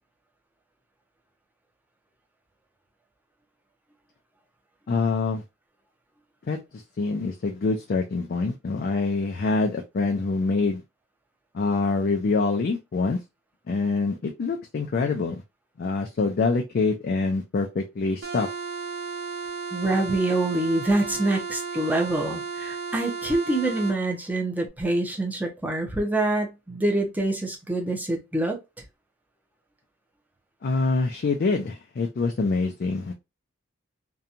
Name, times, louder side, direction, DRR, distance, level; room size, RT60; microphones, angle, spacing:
voice 1, 4.9-5.4 6.5-6.6 7.0-10.8 11.5-13.2 13.7-15.4 15.8-18.5 30.6-33.1, left 3 dB, 50° left, 0.4 m, -25 dB
sound 1, 18.2-24.0, right 5 dB, 70° right, 0.9 m, -34 dB
voice 2, 19.7-28.6, right 2 dB, 10° right, 0.6 m, -25 dB
2.8 x 2.2 x 2.5 m
head